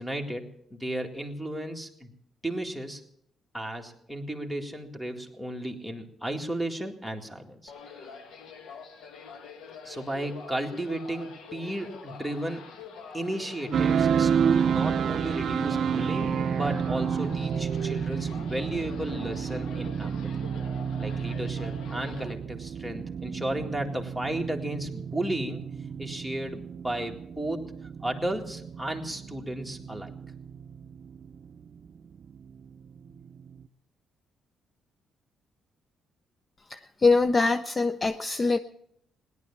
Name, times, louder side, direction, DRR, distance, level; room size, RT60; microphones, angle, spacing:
voice 1, 0.0-2.1 2.4-3.0 3.5-7.7 8.0-8.1 9.8-12.6 13.1-20.3 21.0-25.6 26.0-30.3, right 1 dB, 5° left, 5 dB, 2.1 m, -34 dB
sound 1, 7.7-22.3, left 5 dB, 80° left, 1.4 m, -45 dB
sound 2, 13.7-33.7, right 7 dB, 60° right, 0.5 m, -30 dB
voice 2, 36.7-38.6, left 3 dB, 30° left, 11 dB, 0.5 m, -23 dB
17.5 x 11.0 x 7.2 m, 0.71 s
cardioid pair, 90°, 0 cm